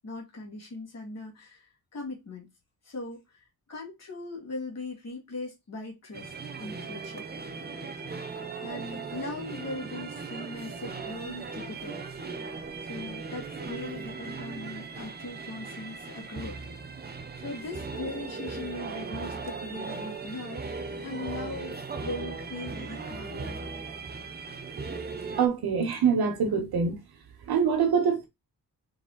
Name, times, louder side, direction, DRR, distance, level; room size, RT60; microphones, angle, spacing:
voice 1, 0.0-2.5 2.8-6.3 6.6-7.2 8.6-12.0 12.8-16.6 17.4-20.6 21.0-23.6, left 2 dB, 45° left, 1.9 m, -39 dB
sound 1, 6.1-25.5, right 4 dB, 25° right, 0.7 m, -38 dB
voice 2, 25.4-27.0 27.5-28.3, right 6 dB, 85° right, 1.2 m, -24 dB
4.2 x 3.3 x 3.8 m
wide cardioid pair, 165°, 36 cm